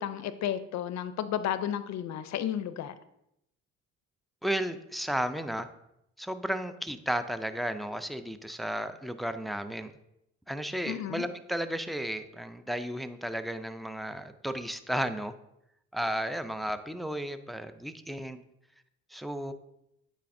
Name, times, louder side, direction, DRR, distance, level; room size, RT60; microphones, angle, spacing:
voice 1, 0.0-2.9 10.9-11.2, left 10 dB, 65° left, 12 dB, 0.5 m, -32 dB
voice 2, 4.4-5.7 6.2-9.9 10.5-15.3 15.9-18.4 19.1-19.5, equal, ahead, 10 dB, 0.3 m, -33 dB
9.0 x 4.2 x 2.6 m, 0.80 s
cardioid pair, 90°, 30 cm